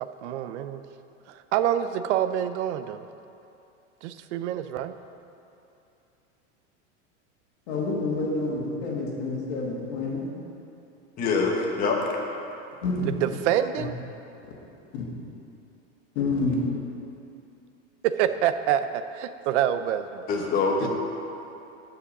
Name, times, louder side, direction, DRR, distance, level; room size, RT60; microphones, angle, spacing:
voice 1, 0.2-0.8 1.3-3.1 4.0-5.0 13.2-13.9 18.0-20.3 20.8-20.9, right 10 dB, 70° right, 11 dB, 0.5 m, -26 dB
voice 2, 7.7-10.3 12.8-13.1 14.9-15.0 16.2-16.6, left 3 dB, 60° left, -2 dB, 2.1 m, -28 dB
voice 3, 11.2-12.0 20.3-20.9, left 4 dB, 25° left, 0 dB, 1.0 m, -24 dB
9.9 x 5.0 x 6.5 m, 2.7 s
supercardioid pair, 155°, 36 cm